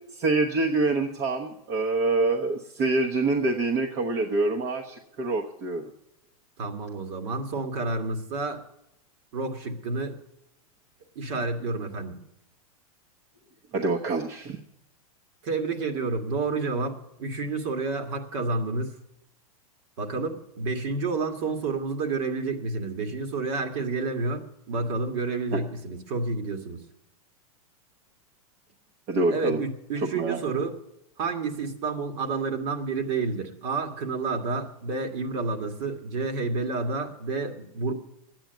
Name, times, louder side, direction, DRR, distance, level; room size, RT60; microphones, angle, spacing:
voice 1, 0.1-5.9 13.7-14.6 25.5-25.6 29.1-29.6 30.0-30.7, right 2 dB, 40° right, 1 dB, 1.2 m, -26 dB
voice 2, 6.6-8.6 9.3-10.1 11.2-12.2 15.4-18.9 20.0-26.8 29.3-30.8 31.2-37.9, right 3 dB, 55° right, 5 dB, 2.0 m, -30 dB
10.5 x 9.0 x 9.2 m, 0.83 s
hypercardioid pair, 135°, 19 cm